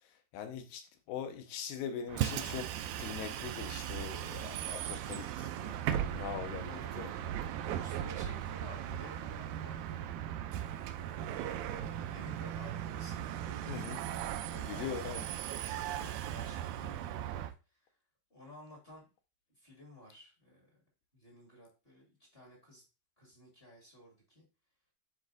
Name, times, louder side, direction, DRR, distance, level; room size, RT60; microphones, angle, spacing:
voice 1, 0.3-0.8 1.1-2.7 3.0-5.5 5.9-7.1 13.7-14.0 14.5-15.2, left 8 dB, 85° left, 2.6 m, -41 dB
Bus, 2.1-17.5, right 11 dB, 85° right, 1.7 m, -38 dB
voice 2, 5.5-6.1 6.6-7.2 7.5-10.0 11.2-15.2 15.5-17.4 18.3-19.1 19.6-20.7 21.1-22.8 23.2-24.4, left 1 dB, 30° left, 1.0 m, -54 dB
9.3 x 4.0 x 2.6 m
omnidirectional pair, 4.0 m